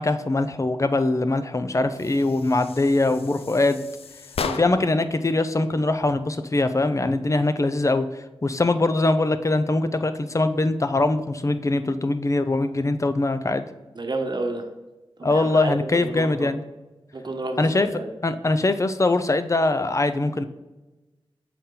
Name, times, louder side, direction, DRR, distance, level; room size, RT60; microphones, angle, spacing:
voice 1, 0.0-3.8 4.5-8.1 8.4-13.7 15.2-16.6 17.6-17.9 18.2-20.4, left 2 dB, 35° left, 10 dB, 0.5 m, -22 dB
sound 1, 1.9-5.0, left 6 dB, 85° left, 0.4 m, -35 dB
voice 2, 13.9-14.7 15.2-16.5 17.1-18.1, right 2 dB, 50° right, 4 dB, 1.0 m, -30 dB
7.1 x 4.3 x 3.8 m, 1.1 s
cardioid pair, 50°, 10 cm